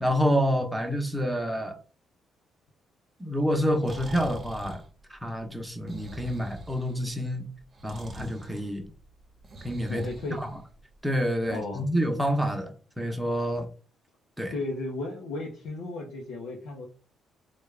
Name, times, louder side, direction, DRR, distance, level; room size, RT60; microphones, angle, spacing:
voice 1, 0.0-1.8 3.2-4.8 5.1-7.4 7.8-8.9 9.6-10.0 10.4-10.5 11.0-13.7 14.4-14.5, equal, 5° right, 0.9 m, -28 dB
Breathing, 3.7-11.0, right 2 dB, 40° right, 0.8 m, -45 dB
voice 2, 9.9-10.4 11.5-11.9 14.5-16.9, left 2 dB, 90° left, 0.7 m, -34 dB
3.4 x 2.4 x 3.2 m
cardioid pair, 90°, 0 cm